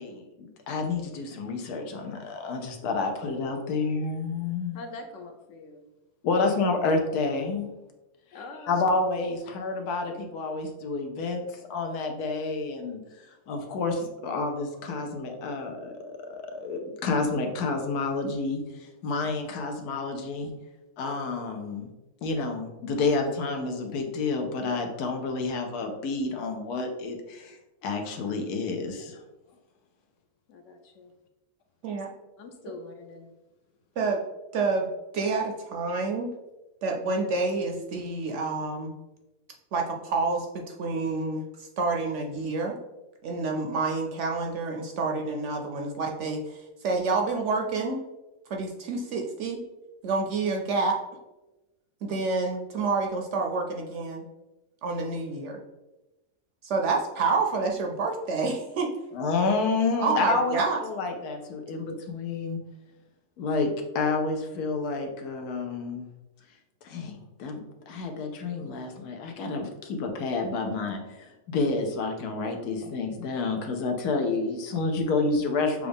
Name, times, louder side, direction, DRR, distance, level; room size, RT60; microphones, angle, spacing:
voice 1, 0.0-4.8 6.2-7.7 8.7-20.5 21.0-21.9 22.2-29.2 59.1-62.6 63.4-66.1 66.8-75.9, left 3 dB, 85° left, 4 dB, 1.3 m, -29 dB
voice 2, 4.7-5.8 8.3-9.0 30.5-31.1 32.4-33.3 35.9-36.0, left 3 dB, 65° left, 5 dB, 0.8 m, -43 dB
voice 3, 34.5-36.3 36.8-38.9 39.7-42.8 43.2-48.0 48.5-49.6 50.0-51.0 52.0-54.3 54.8-55.6 56.6-58.9 60.0-60.8, right 3 dB, 65° right, 1 dB, 0.8 m, -28 dB
6.4 x 2.4 x 3.4 m, 1.0 s
omnidirectional pair, 1.6 m